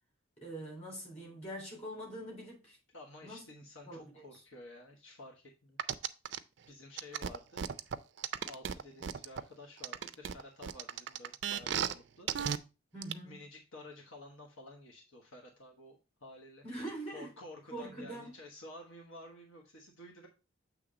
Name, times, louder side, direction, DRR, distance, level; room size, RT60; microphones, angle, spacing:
voice 1, 0.4-2.8 3.2-3.5 3.9-4.2 12.9-13.4 16.6-17.3 17.7-18.3, right 1 dB, 30° left, 3.4 m, -43 dB
voice 2, 2.9-5.8 6.7-7.7 8.4-12.3 13.2-16.6 17.1-20.3, left 2 dB, 80° left, 1.2 m, -52 dB
sound 1, 5.8-6.4 7.0-9.4 9.8-11.9 12.3-12.6 13.0-13.1, right 8 dB, 60° right, 0.4 m, -35 dB
7.1 x 3.3 x 4.9 m
head